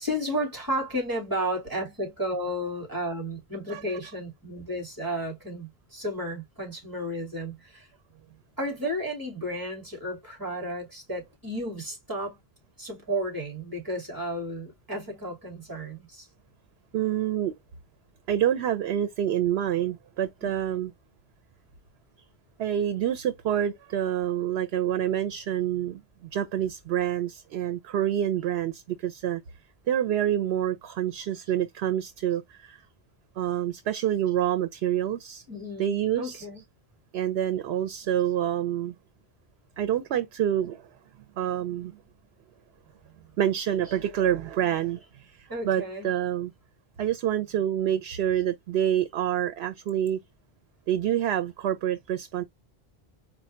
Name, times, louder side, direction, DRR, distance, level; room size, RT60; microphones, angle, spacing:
voice 1, 0.0-7.9 8.6-12.4 12.8-16.3 20.4-20.5 35.5-36.6 45.5-46.2, equal, 20° right, 2.6 m, -33 dB
voice 2, 16.9-17.5 18.3-20.9 22.6-29.4 29.9-32.8 33.4-35.4 35.8-36.4 37.1-38.9 39.8-40.9 41.4-42.0 43.4-46.5 47.0-50.2 50.9-52.4, right 10 dB, 85° right, 0.8 m, -27 dB
4.6 x 2.1 x 4.3 m
omnidirectional pair, 1.0 m